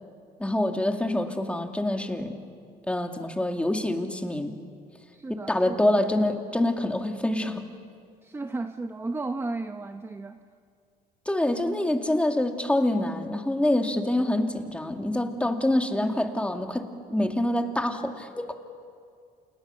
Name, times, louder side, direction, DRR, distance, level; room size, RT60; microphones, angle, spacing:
voice 1, 0.4-2.4 2.9-4.6 5.3-7.7 11.3-18.5, left 1 dB, 5° left, 5 dB, 2.3 m, -26 dB
voice 2, 5.1-5.8 8.2-10.4, right 3 dB, 15° right, 8 dB, 0.9 m, -34 dB
29.0 x 28.5 x 7.0 m, 2.3 s
cardioid pair, 110°, 17 cm